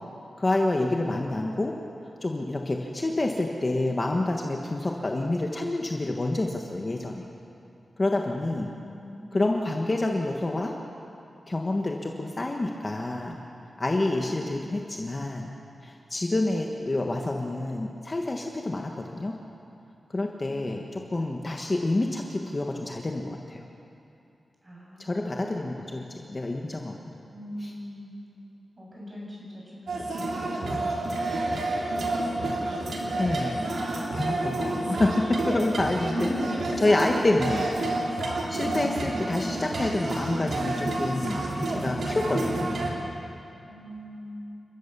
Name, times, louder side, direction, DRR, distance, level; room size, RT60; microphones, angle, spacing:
voice 1, 0.4-1.8 2.2-7.2 8.0-8.7 9.3-10.7 11.5-13.4 13.8-15.5 15.8-19.3 20.1-23.6 25.0-26.9 27.6-27.7 33.2-33.7 34.2-36.3 36.8-37.7 38.5-41.4 41.7-42.9, left 2 dB, 25° left, 1 dB, 1.3 m, -28 dB
voice 2, 8.3-9.4 20.2-21.0 24.6-25.6 27.3-28.1 28.8-34.0 34.2-34.9 36.1-37.1 38.5-39.1 43.6-44.4, equal, 20° right, -4 dB, 7.3 m, -40 dB
sound 1, 29.9-42.9, right 2 dB, 75° right, 3.5 m, -29 dB
29.5 x 14.5 x 6.8 m, 2.7 s
wide cardioid pair, 150°, 0 cm